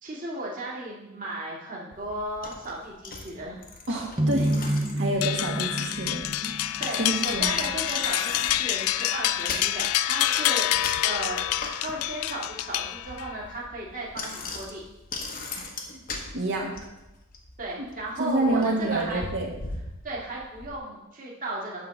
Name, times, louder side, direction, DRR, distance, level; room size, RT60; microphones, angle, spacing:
voice 1, 0.0-3.6 6.8-14.8 17.6-19.2 20.0-21.8, right 1 dB, 35° right, -4 dB, 2.1 m, -35 dB
Bicycle, 1.9-20.8, left 3 dB, 40° left, 1.0 m, -41 dB
voice 2, 3.9-6.7 7.0-7.5 15.5-16.0 16.3-16.7 17.8-17.9 18.2-19.5, right 2 dB, 55° right, -1 dB, 1.9 m, -28 dB
sound 1, 4.2-7.4, right 1 dB, 20° right, 0.8 m, -28 dB
sound 2, 5.2-13.4, left 13 dB, 80° left, 0.3 m, -27 dB
9.1 x 3.7 x 7.1 m, 0.95 s
head